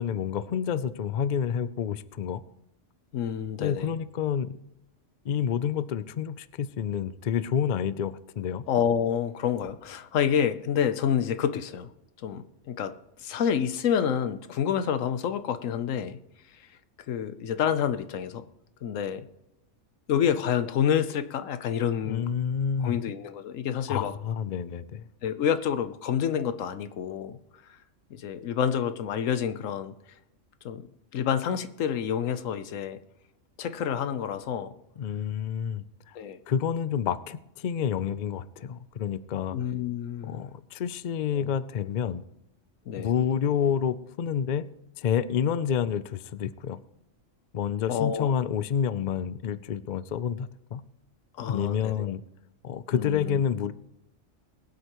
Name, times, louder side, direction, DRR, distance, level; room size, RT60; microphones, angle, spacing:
voice 1, 0.0-2.4 3.6-4.6 5.2-8.6 22.0-23.0 23.9-25.1 35.0-36.2 36.5-39.6 40.2-42.2 43.0-44.7 45.0-46.8 47.5-50.8 51.5-52.2 52.6-53.7, left 8 dB, 60° left, 15 dB, 0.4 m, -29 dB
voice 2, 3.1-4.0 8.7-11.9 12.2-12.9 13.2-16.2 17.1-18.4 18.8-19.3 20.1-22.3 22.8-24.1 25.2-27.4 27.7-27.8 28.1-29.9 30.6-30.9 31.1-33.0 33.6-34.7 36.1-36.4 39.5-40.4 41.3-41.5 42.9-43.1 47.9-48.3 51.4-52.1 52.9-53.4, left 8 dB, 80° left, 12 dB, 1.1 m, -28 dB
22.5 x 8.0 x 3.0 m, 0.89 s
omnidirectional pair, 1.4 m